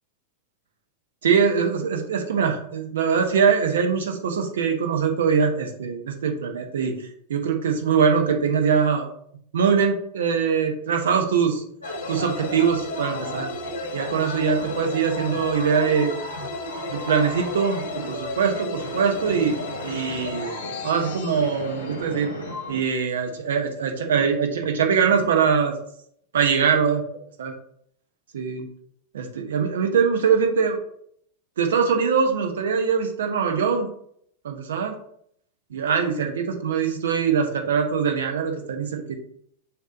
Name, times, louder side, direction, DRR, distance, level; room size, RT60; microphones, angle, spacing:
voice 1, 1.2-9.1 9.5-11.6 12.1-13.5 13.9-16.1 16.9-22.3 22.7-25.7 26.3-27.0 27.4-27.5 28.3-28.7 29.1-30.8 31.6-33.9 34.4-34.9 35.7-39.2, right 6 dB, 65° right, 4 dB, 1.0 m, -22 dB
sound 1, 11.8-22.8, equal, 90° left, 1.6 m, -33 dB
sound 2, 11.8-23.2, left 8 dB, 55° left, 1.0 m, -39 dB
6.9 x 3.0 x 5.1 m, 0.67 s
figure-of-eight pair, 90°, 0 cm